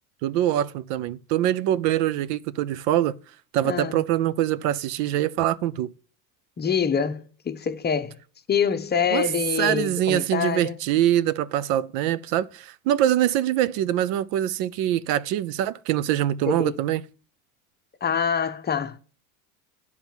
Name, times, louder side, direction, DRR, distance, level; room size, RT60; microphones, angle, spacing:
voice 1, 0.2-3.1 3.5-5.9 9.1-9.2 9.6-17.0, right 12 dB, 65° right, 0.6 m, -24 dB
voice 2, 3.6-4.0 6.6-8.2 8.5-10.8 16.5-16.8 18.0-19.0, left 7 dB, 20° left, 0.8 m, -25 dB
9.0 x 4.8 x 7.1 m
supercardioid pair, 100°, 44 cm